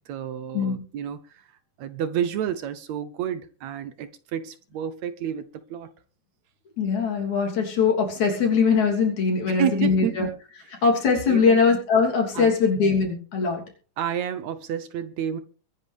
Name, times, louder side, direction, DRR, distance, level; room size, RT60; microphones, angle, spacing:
voice 1, 0.1-1.5 1.8-5.9 9.5-10.3 10.7-10.8 11.3-11.6 12.3-12.5 14.0-15.4, right 9 dB, 70° right, 12 dB, 1.9 m, -30 dB
voice 2, 6.8-10.3 10.8-13.6, left 5 dB, 65° left, 1 dB, 4.5 m, -21 dB
23.0 x 9.9 x 3.5 m, 0.39 s
omnidirectional pair, 3.6 m